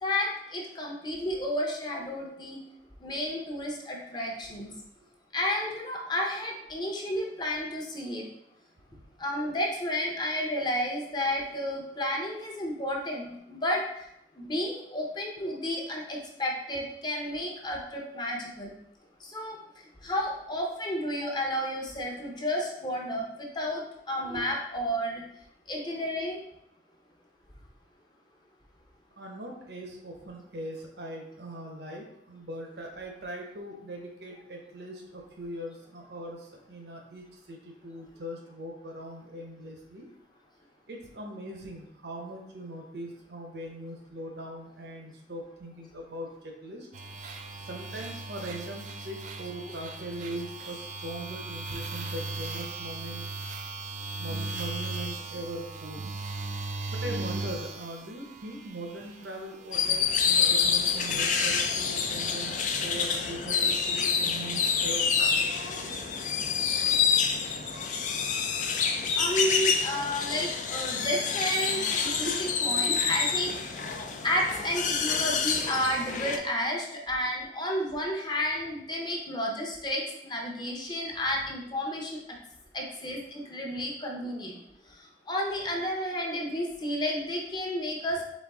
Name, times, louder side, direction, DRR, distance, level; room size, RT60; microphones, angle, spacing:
voice 1, 0.0-2.6 3.0-4.7 5.3-8.2 9.2-14.1 14.3-18.7 19.2-19.6 20.0-23.8 24.1-25.2 25.7-26.4 69.1-74.0 74.2-82.2 82.7-84.6 85.3-88.2, left 1 dB, 25° left, -1 dB, 0.8 m, -31 dB
voice 2, 29.2-40.1 40.9-46.9 47.6-53.3 54.2-56.1 56.9-66.2 72.0-72.4 73.8-74.1, right 1 dB, 70° right, 1 dB, 0.9 m, -40 dB
sound 1, 46.9-59.3 59.7-61.9, right 2 dB, 45° right, 0.4 m, -38 dB
sound 2, 59.7-76.4, left 6 dB, 45° left, 0.4 m, -27 dB
4.4 x 3.4 x 3.5 m, 0.79 s
head